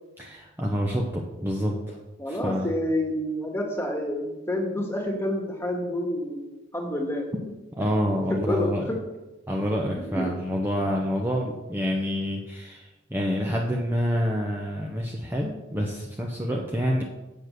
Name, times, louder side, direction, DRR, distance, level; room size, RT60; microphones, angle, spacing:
voice 1, 0.2-2.0 2.3-2.7 7.7-8.9 9.5-17.0, equal, 10° right, -2 dB, 0.8 m, -27 dB
voice 2, 2.2-7.3 7.8-7.9 8.3-9.0 10.0-10.3, left 1 dB, 10° left, 1 dB, 1.7 m, -28 dB
7.8 x 7.1 x 6.7 m, 1.1 s
head